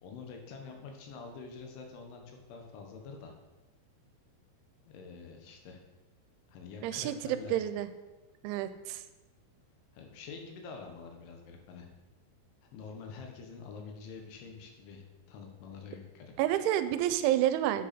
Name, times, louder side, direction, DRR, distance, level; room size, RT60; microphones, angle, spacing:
voice 1, 0.0-3.3 4.9-5.8 6.5-7.6 9.9-11.9 12.7-16.6, left 5 dB, 85° left, 3 dB, 3.8 m, -47 dB
voice 2, 6.8-7.9 8.4-9.0 16.4-17.9, right 12 dB, 85° right, 12 dB, 3.1 m, -29 dB
10.5 x 9.4 x 4.3 m, 1.1 s
omnidirectional pair, 5.4 m